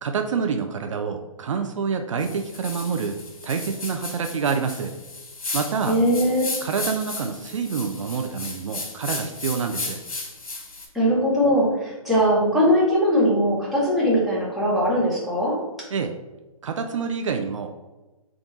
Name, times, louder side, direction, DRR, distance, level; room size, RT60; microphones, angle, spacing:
voice 1, 0.0-4.9 5.5-6.0 6.6-10.0 15.9-16.1 16.6-17.7, right 6 dB, 60° right, 6 dB, 0.4 m, -27 dB
sound 1, 2.2-10.9, left 3 dB, 75° left, 1.1 m, -35 dB
voice 2, 5.9-6.5 10.9-15.5, equal, ahead, -8 dB, 0.8 m, -20 dB
3.6 x 2.3 x 3.9 m, 1.1 s
hypercardioid pair, 145°, 18 cm